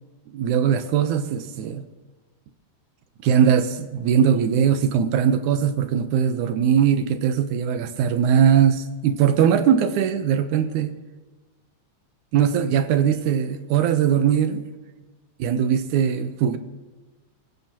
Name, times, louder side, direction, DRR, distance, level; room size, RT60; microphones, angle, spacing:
voice 1, 0.3-1.8 3.2-10.9 12.3-14.6 15.4-16.6, right 8 dB, 85° right, 2.4 m, -20 dB
26.0 x 15.0 x 2.9 m
omnidirectional pair, 3.4 m